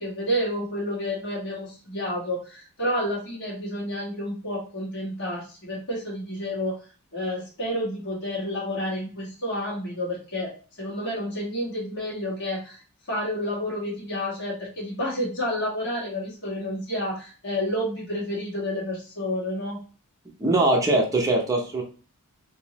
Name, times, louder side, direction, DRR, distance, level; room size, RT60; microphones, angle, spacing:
voice 1, 0.0-6.8 7.1-10.5 10.8-12.8 13.1-19.8, equal, 55° left, -6 dB, 1.7 m, -30 dB
voice 2, 20.4-21.8, right 2 dB, 15° right, -1 dB, 0.7 m, -21 dB
3.6 x 2.7 x 2.9 m, 0.37 s
head